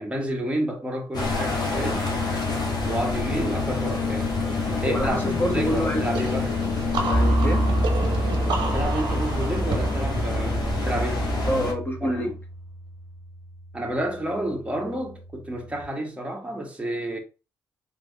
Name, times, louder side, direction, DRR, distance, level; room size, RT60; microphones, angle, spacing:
voice 1, 0.0-2.1 2.8-4.3 4.7-6.5 8.6-11.3 12.0-12.3 13.7-17.2, right 1 dB, 15° right, 1.5 m, -30 dB
sound 1, 1.1-11.7, left 3 dB, 50° left, 1.5 m, -27 dB
voice 2, 4.8-6.0 7.1-7.7 11.5-12.3, equal, 20° left, 1.3 m, -27 dB
sound 2, 6.1-11.7, right 3 dB, 60° right, 0.9 m, -32 dB
sound 3, 7.1-15.8, right 1 dB, 80° left, 1.8 m, -28 dB
3.7 x 3.3 x 2.2 m
hypercardioid pair, 45°, 9 cm